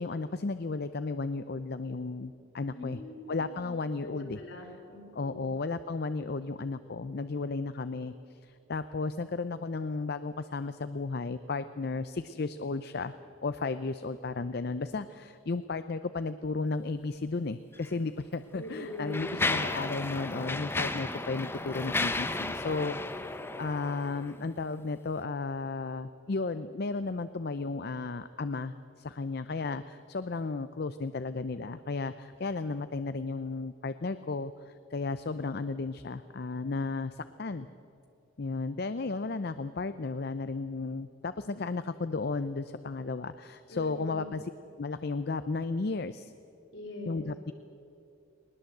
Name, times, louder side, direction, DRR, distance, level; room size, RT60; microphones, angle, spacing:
voice 1, 0.0-3.0 3.3-4.4 5.1-13.1 13.4-37.7 38.4-44.5 44.8-46.3 47.1-47.5, left 3 dB, 50° left, 12 dB, 0.5 m, -34 dB
voice 2, 2.7-3.7 4.0-5.4 18.5-19.3 43.7-44.3 46.7-47.3, left 1 dB, 70° left, 1 dB, 4.2 m, -42 dB
Mechanisms, 17.7-17.9 18.6-24.4, left 2 dB, 10° left, 0.8 m, -33 dB
19.5 x 19.5 x 7.9 m, 2.6 s
head